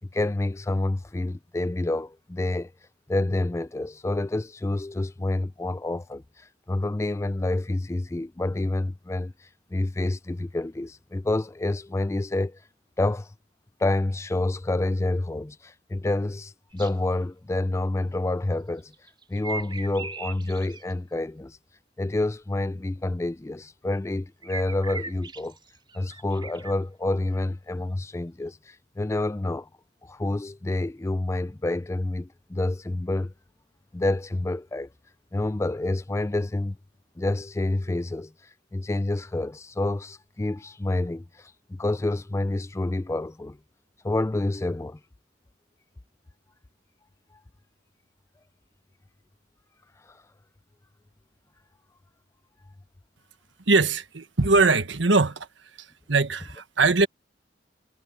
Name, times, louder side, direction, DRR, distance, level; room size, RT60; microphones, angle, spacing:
voice 1, 0.1-2.7 3.1-12.6 13.0-13.3 13.8-18.9 19.3-21.6 22.0-25.5 25.9-29.7 30.0-33.3 33.9-34.9 35.3-36.8 37.2-43.6 44.0-45.0 50.1-50.2, left 2 dB, 15° left, 0.3 m, -28 dB
sound 1, 16.7-16.9 18.8-20.9 24.4-26.7, right 4 dB, 25° right, 4.5 m, -38 dB
voice 2, 53.7-55.5 56.1-57.1, right 3 dB, 75° right, 1.4 m, -21 dB
head